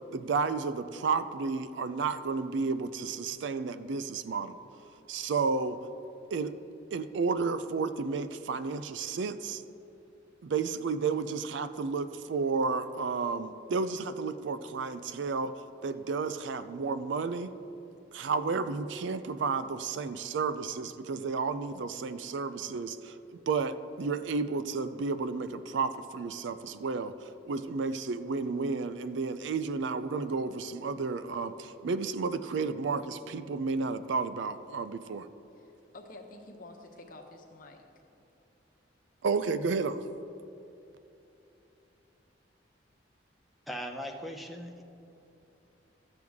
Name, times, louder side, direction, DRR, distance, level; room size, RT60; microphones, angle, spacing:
voice 1, 0.1-4.6 5.1-5.8 6.3-6.5 6.9-9.6 10.4-15.5 15.8-17.5 18.1-27.1 27.5-35.3 39.2-40.0, right 4 dB, 70° right, 12 dB, 0.4 m, -32 dB
voice 2, 35.5-37.9, left 2 dB, 45° left, 2 dB, 1.0 m, -49 dB
voice 3, 43.7-44.8, equal, ahead, 3 dB, 0.6 m, -39 dB
13.0 x 7.8 x 3.6 m, 2.9 s
head